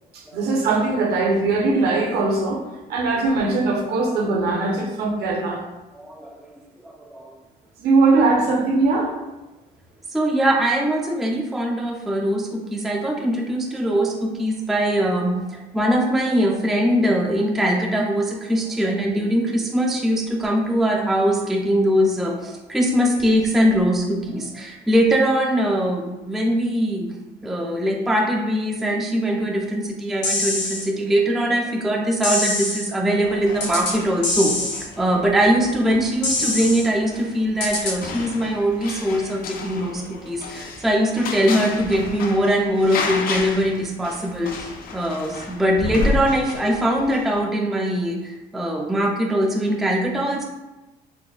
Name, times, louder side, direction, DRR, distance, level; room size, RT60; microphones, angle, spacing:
voice 1, 0.1-5.6 7.8-9.1, right 3 dB, 70° right, 1 dB, 0.7 m, -20 dB
voice 2, 5.9-6.5 6.8-7.3 10.1-27.1 27.4-34.7 35.0-50.4, equal, ahead, 0 dB, 0.3 m, -22 dB
sound 1, 30.2-30.9 32.2-32.9 33.6-34.0 34.2-34.9 36.2-36.9 37.6-38.0, left 2 dB, 80° left, 1.0 m, -24 dB
sound 2, 33.2-47.4, left 4 dB, 60° left, 0.5 m, -32 dB
4.0 x 2.6 x 2.3 m, 1.1 s
cardioid pair, 110°, 17 cm